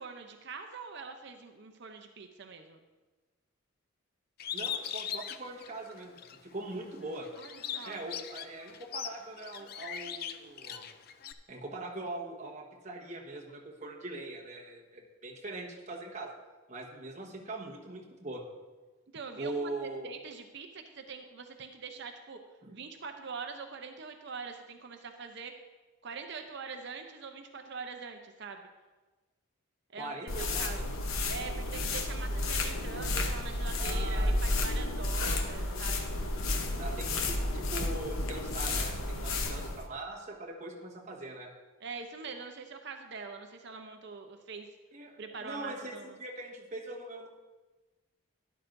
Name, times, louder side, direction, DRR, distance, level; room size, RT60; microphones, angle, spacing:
voice 1, 0.0-2.8 7.4-8.0 19.1-22.4 22.7-25.5 26.0-28.7 29.9-30.8 31.3-36.1 41.8-44.7 45.2-46.2, right 5 dB, 55° right, 5 dB, 0.6 m, -43 dB
Bird, 4.4-6.4 6.8-11.3, left 9 dB, 45° left, 0.4 m, -39 dB
voice 2, 4.5-7.3 7.8-10.8 11.5-16.3 16.7-18.4 19.4-20.1 22.6-22.8 29.9-30.9 33.8-34.9 36.8-41.5 44.9-47.3, right 2 dB, 35° right, 0 dB, 1.3 m, -42 dB
sound 1, 30.3-39.8, left 2 dB, 75° left, 0.9 m, -32 dB
12.5 x 11.0 x 2.6 m, 1.2 s
head